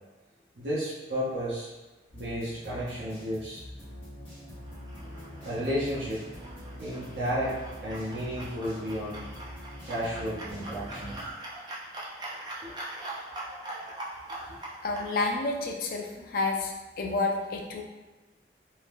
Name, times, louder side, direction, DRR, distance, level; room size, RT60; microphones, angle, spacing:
voice 1, 0.6-1.7 2.1-3.6 5.4-6.2 6.8-9.3 9.8-11.1 14.5-14.6, equal, 70° right, -10 dB, 0.7 m, -32 dB
sound 1, 2.1-11.2, equal, 10° left, 0.9 m, -44 dB
sound 2, 4.6-15.1, right 1 dB, 25° right, 0.4 m, -42 dB
voice 2, 14.8-17.8, left 3 dB, 55° left, 1 dB, 0.4 m, -30 dB
2.7 x 2.2 x 3.3 m, 1.1 s
head